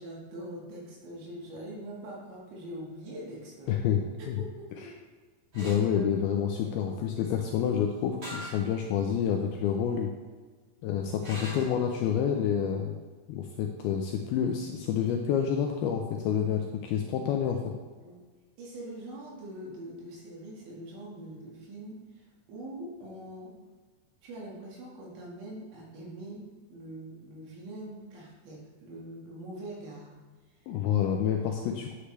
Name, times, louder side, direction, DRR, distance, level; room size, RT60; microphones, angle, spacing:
voice 1, 0.0-3.7 4.2-4.9 5.6-7.0 18.0-18.2 18.6-23.6 24.2-30.1 30.5-30.7 31.5-31.6, right 1 dB, 90° right, -4 dB, 4.3 m, -43 dB
voice 2, 3.7-4.4 4.8-4.9 5.6-10.1 10.8-12.9 13.3-17.7 30.7-31.9, left 8 dB, 90° left, 2 dB, 2.2 m, -28 dB
sound 1, 5.5-5.8 8.2-8.6 9.2-9.3 11.2-11.8, equal, 30° right, 3.4 m, -40 dB
9.9 x 8.3 x 3.3 m, 1.4 s
omnidirectional pair, 5.1 m